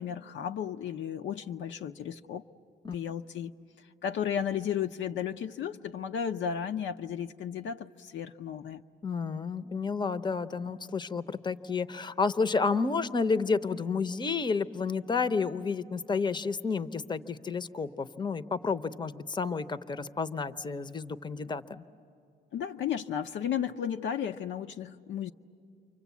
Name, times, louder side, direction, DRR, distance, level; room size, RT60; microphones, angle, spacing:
voice 1, 0.0-2.4 2.9-3.5 4.0-8.8 22.5-25.3, left 8 dB, 70° left, 6 dB, 0.6 m, -34 dB
voice 2, 9.0-21.8, left 4 dB, 20° left, 12 dB, 0.7 m, -31 dB
29.0 x 24.5 x 8.3 m, 2.5 s
cardioid pair, 90°, 20 cm